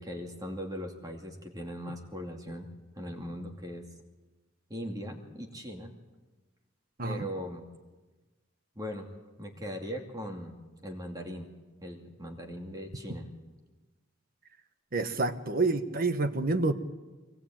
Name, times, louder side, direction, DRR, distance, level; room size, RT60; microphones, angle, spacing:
voice 1, 0.0-2.7 2.9-3.8 4.7-5.9 7.0-7.6 8.8-9.1 9.4-10.5 10.8-11.5 11.8-13.3, equal, 20° right, 3 dB, 2.6 m, -39 dB
voice 2, 14.9-16.7, right 3 dB, 50° right, 10 dB, 1.4 m, -28 dB
23.0 x 19.0 x 9.0 m, 1.2 s
head